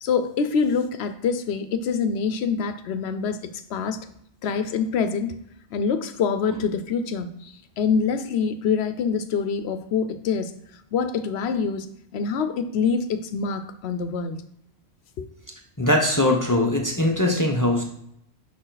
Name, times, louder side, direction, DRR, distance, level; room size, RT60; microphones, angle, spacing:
voice 1, 0.0-3.4 3.7-4.0 4.4-5.4 5.7-10.5 10.9-11.9 12.1-14.4 15.2-15.3, left 5 dB, 75° left, 10 dB, 0.9 m, -25 dB
voice 2, 15.8-17.8, left 1 dB, 20° left, 1 dB, 0.8 m, -21 dB
6.6 x 5.4 x 4.0 m, 0.71 s
omnidirectional pair, 1.1 m